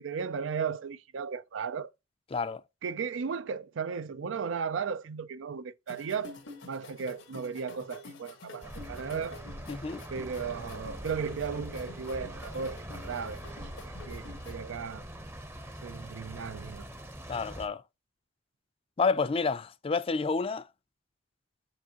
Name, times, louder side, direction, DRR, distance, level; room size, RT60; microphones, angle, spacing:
voice 1, 0.0-1.9 2.8-6.4 6.7-9.4 10.1-13.4 13.8-15.0 15.8-16.9, right 6 dB, 85° right, 0.4 m, -35 dB
voice 2, 2.3-2.6 9.7-10.0 17.3-17.8 19.0-20.7, left 4 dB, 30° left, 0.4 m, -29 dB
sound 1, 5.9-14.5, left 3 dB, 85° left, 1.4 m, -49 dB
sound 2, 8.6-17.7, equal, 15° right, 0.6 m, -43 dB
7.2 x 4.6 x 2.9 m
head